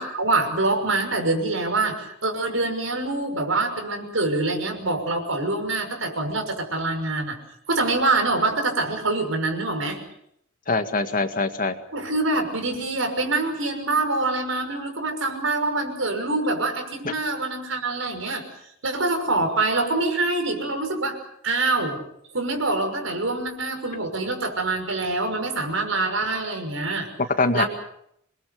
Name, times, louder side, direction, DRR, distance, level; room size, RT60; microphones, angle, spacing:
voice 1, 0.0-7.4 7.7-10.0 11.9-18.4 18.8-22.0 22.3-27.1 27.5-27.7, right 2 dB, 85° right, 5 dB, 6.0 m, -25 dB
voice 2, 10.7-11.8 17.0-17.1 27.4-27.6, left 3 dB, 45° left, 7 dB, 2.1 m, -23 dB
27.0 x 22.0 x 6.8 m, 0.73 s
head